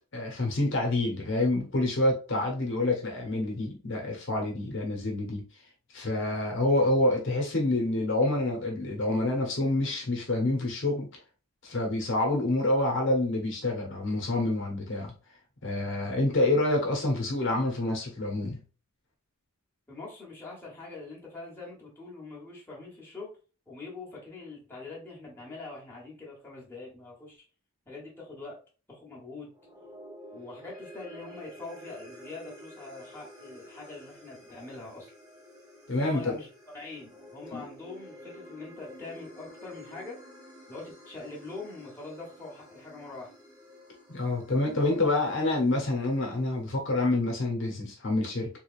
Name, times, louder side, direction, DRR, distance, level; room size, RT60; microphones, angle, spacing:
voice 1, 0.1-5.4 5.9-11.1 11.6-15.1 15.6-18.6 35.9-36.3 37.5-37.6 44.1-48.5, left 2 dB, 60° left, 1.0 m, -27 dB
voice 2, 19.9-23.3 23.7-27.4 27.9-28.6 28.9-29.5 30.3-35.1 36.0-36.5 36.7-40.2 40.7-43.3, left 3 dB, 10° left, 1.3 m, -43 dB
sound 1, 29.5-46.0, equal, 20° right, 1.2 m, -50 dB
3.6 x 3.3 x 2.5 m
head